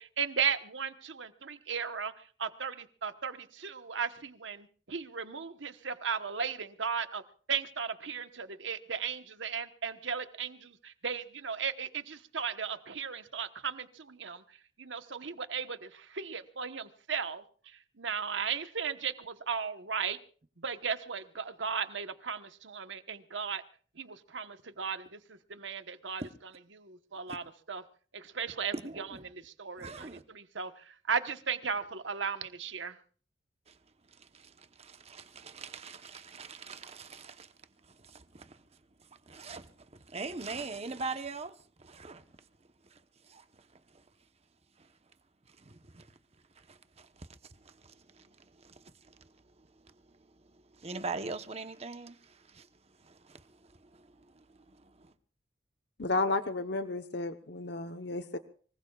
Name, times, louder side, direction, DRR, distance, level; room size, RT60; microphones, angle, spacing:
voice 1, 0.0-2.1 2.4-7.2 7.5-14.4 14.8-17.4 18.0-20.2 20.6-23.6 24.0-25.2 25.5-26.2 26.7-27.8 28.1-29.1 29.4-33.0, right 6 dB, 85° right, 1.2 m, -36 dB
voice 2, 28.7-29.3 29.8-30.2 33.7-33.8 34.1-37.5 37.8-42.4 42.9-44.0 44.8-44.9 45.5-46.1 46.5-52.7 53.0-55.1, right 3 dB, 35° right, 1.0 m, -44 dB
voice 3, 56.0-58.4, left 3 dB, 65° left, 1.0 m, -32 dB
24.5 x 22.5 x 2.4 m
head